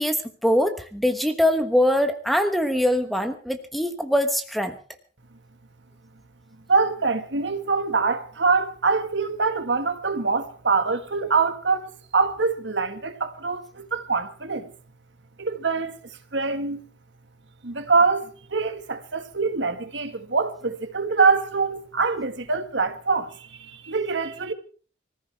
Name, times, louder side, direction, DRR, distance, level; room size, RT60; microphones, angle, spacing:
voice 1, 0.0-4.8, left 1 dB, ahead, 1.2 m, -23 dB
voice 2, 6.7-14.7 15.4-16.0 16.3-16.8 17.6-24.5, right 4 dB, 80° right, 1.6 m, -24 dB
24.5 x 14.5 x 3.5 m
head